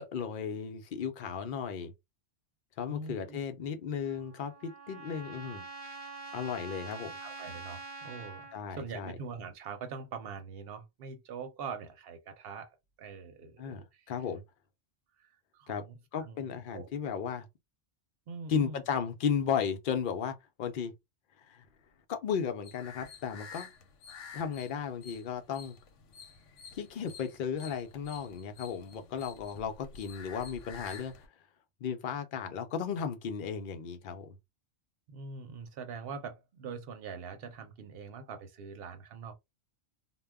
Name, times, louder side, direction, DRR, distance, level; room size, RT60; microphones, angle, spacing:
voice 1, 0.0-1.9 2.8-5.7 6.3-7.2 8.5-9.2 13.6-14.4 15.7-15.8 16.1-17.5 18.5-20.9 21.4-21.6 22.1-23.7 24.3-25.8 26.7-31.1 31.8-34.4, left 7 dB, 55° left, 0.6 m, -35 dB
voice 2, 2.9-3.4 7.2-12.7 13.0-14.1 15.2-16.9 18.3-18.8 35.1-39.3, right 5 dB, 60° right, 0.8 m, -43 dB
Trumpet, 4.0-8.6, right 3 dB, 30° right, 0.5 m, -45 dB
sound 1, 22.6-31.3, left 5 dB, 85° left, 1.0 m, -50 dB
2.2 x 2.1 x 3.4 m
omnidirectional pair, 1.2 m